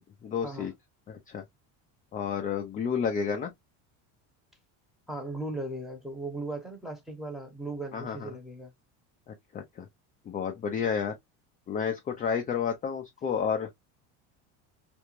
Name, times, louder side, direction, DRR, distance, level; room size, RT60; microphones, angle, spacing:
voice 1, 0.2-0.7 1.1-1.4 2.1-3.5 7.9-8.3 9.3-9.9 10.3-11.1 11.7-13.7, left 7 dB, 20° left, 0.3 m, -31 dB
voice 2, 5.1-8.7, right 2 dB, ahead, 0.8 m, -37 dB
2.5 x 2.1 x 3.0 m
cardioid pair, 130°, 42 cm